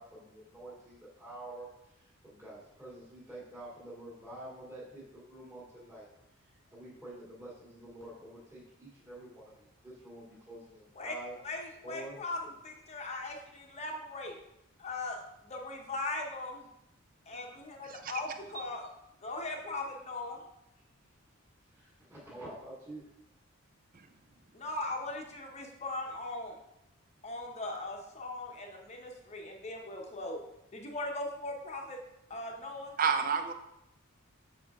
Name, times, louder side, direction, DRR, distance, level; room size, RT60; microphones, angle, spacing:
voice 1, 0.0-6.1 6.5-12.2 21.7-23.0, right 1 dB, 10° right, -6 dB, 1.9 m, -48 dB
voice 2, 11.4-14.3 14.8-16.7 17.3-18.9 19.2-20.4 24.5-26.6 27.2-30.4 30.7-32.0 32.3-32.9, left 2 dB, 30° left, 1 dB, 0.8 m, -39 dB
voice 3, 33.0-33.5, right 6 dB, 40° right, 7 dB, 0.5 m, -30 dB
7.2 x 4.4 x 3.5 m, 0.86 s
head